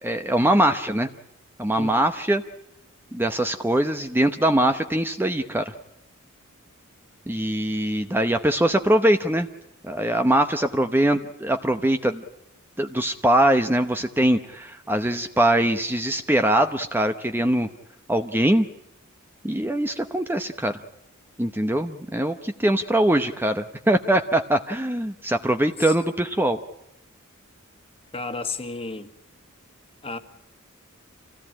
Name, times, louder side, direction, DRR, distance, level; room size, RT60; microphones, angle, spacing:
voice 1, 0.0-1.1 1.6-2.4 3.1-5.7 7.3-9.5 9.8-12.2 12.8-17.7 18.1-18.7 19.4-20.8 21.4-26.6, right 1 dB, 10° right, 0.8 m, -22 dB
voice 2, 28.1-29.1 30.0-30.2, left 3 dB, 25° left, 1.7 m, -32 dB
27.0 x 17.0 x 8.7 m
head